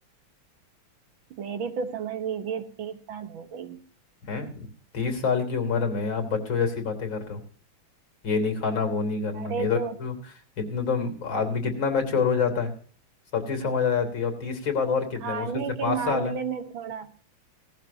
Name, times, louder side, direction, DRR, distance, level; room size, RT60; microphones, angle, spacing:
voice 1, 1.3-3.8 9.3-10.0 15.2-17.1, right 6 dB, 70° right, 9 dB, 2.0 m, -32 dB
voice 2, 4.3-7.4 8.2-10.1 10.6-12.7 13.3-16.3, left 5 dB, 65° left, 6 dB, 3.9 m, -27 dB
18.0 x 15.0 x 2.8 m, 0.43 s
omnidirectional pair, 2.3 m